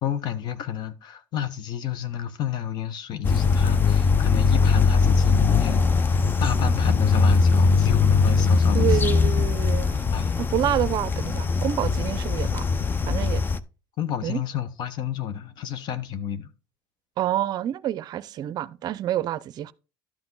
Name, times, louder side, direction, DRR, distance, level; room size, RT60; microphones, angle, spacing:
voice 1, 0.0-9.3 10.1-10.3 14.0-16.5, left 9 dB, 60° left, 1.0 m, -31 dB
sound 1, 3.2-13.6, left 4 dB, 25° left, 0.6 m, -21 dB
voice 2, 8.7-10.0 10.4-12.7 13.1-13.4 14.2-14.4 17.2-19.7, right 12 dB, 55° right, 0.5 m, -27 dB
12.0 x 5.9 x 3.9 m
supercardioid pair, 100°, 8 cm